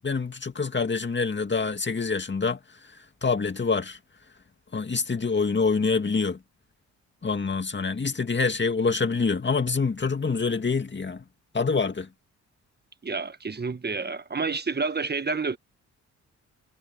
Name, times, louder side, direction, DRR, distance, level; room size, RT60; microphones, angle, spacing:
voice 1, 0.0-2.6 3.2-4.0 4.7-6.4 7.2-11.2 11.5-12.1, left 4 dB, 35° left, 2.3 m, -26 dB
voice 2, 13.0-15.6, right 4 dB, 30° right, 1.5 m, -29 dB
supercardioid pair, 55°, 31 cm